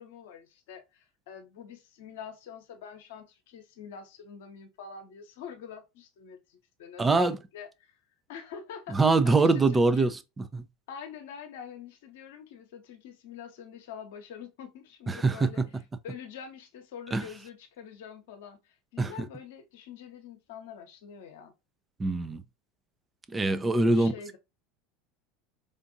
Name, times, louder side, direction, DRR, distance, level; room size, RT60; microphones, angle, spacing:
voice 1, 0.0-8.0 8.3-10.1 10.9-21.5 23.9-24.4, left 7 dB, 65° left, 0.9 m, -45 dB
voice 2, 7.0-7.4 8.9-10.2 10.5-10.6 15.1-15.6 17.1-17.2 19.0-19.1 22.0-22.4 23.3-24.1, right 3 dB, 20° right, 0.5 m, -23 dB
5.0 x 2.6 x 2.6 m
figure-of-eight pair, 75°, 0 cm